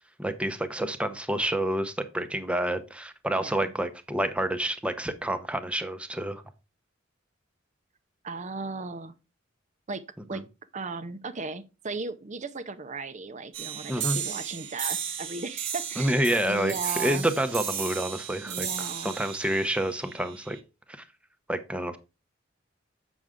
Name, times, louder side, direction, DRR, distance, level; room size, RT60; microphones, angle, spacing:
voice 1, 0.2-6.4 10.3-10.4 13.9-14.2 16.0-18.7 19.0-20.6 21.5-22.0, right 1 dB, 5° right, 0.7 m, -28 dB
voice 2, 3.3-3.7 8.2-9.1 9.9-10.0 10.3-10.4 10.7-16.1 16.5-17.3 18.5-19.2, right 4 dB, 35° right, 0.6 m, -36 dB
sound 1, 13.5-20.6, right 8 dB, 65° right, 1.3 m, -35 dB
7.8 x 6.2 x 3.6 m
head